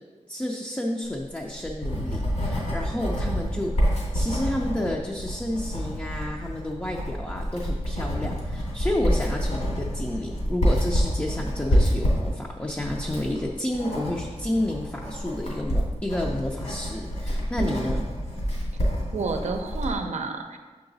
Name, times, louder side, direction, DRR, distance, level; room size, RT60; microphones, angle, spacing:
voice 1, 0.3-3.9 4.1-18.0, left 1 dB, 15° left, -1 dB, 0.5 m, -30 dB
Writing, 1.2-20.0, equal, 75° left, 2.2 m, -27 dB
voice 2, 19.1-20.6, right 4 dB, 75° right, 6 dB, 0.6 m, -30 dB
6.8 x 4.8 x 4.0 m, 1.3 s
wide cardioid pair, 130°, 12 cm